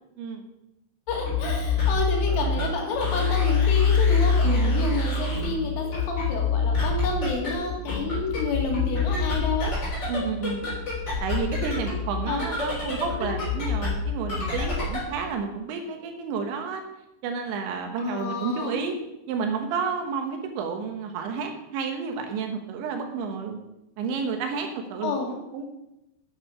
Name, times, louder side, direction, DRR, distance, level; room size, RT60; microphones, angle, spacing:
voice 1, 1.1-9.8 12.3-12.4 18.0-18.8 25.0-25.3, left 4 dB, 80° left, 1 dB, 4.5 m, -30 dB
sound 1, 1.1-15.1, left 4 dB, 25° left, 3.6 m, -26 dB
voice 2, 4.4-4.8 10.1-10.6 11.2-16.8 17.2-19.0 19.3-23.6 24.0-25.6, right 5 dB, 75° right, 4 dB, 3.3 m, -30 dB
9.3 x 8.3 x 5.6 m, 0.89 s
omnidirectional pair, 5.6 m